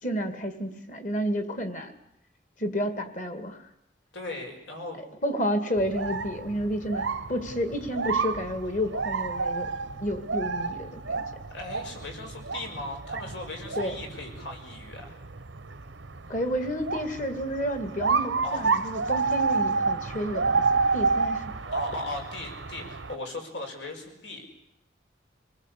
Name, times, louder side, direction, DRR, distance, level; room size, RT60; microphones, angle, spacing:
voice 1, 0.0-1.9 2.6-3.6 5.2-9.7 10.0-11.2 13.8-14.0 16.3-21.5, equal, 40° left, 8 dB, 2.4 m, -31 dB
voice 2, 4.1-5.0 11.5-15.2 18.4-18.6 21.6-24.5, left 2 dB, 80° left, 3 dB, 6.4 m, -38 dB
sound 1, 5.8-23.1, right 4 dB, 90° right, 1.1 m, -30 dB
27.0 x 19.5 x 8.4 m, 0.80 s
head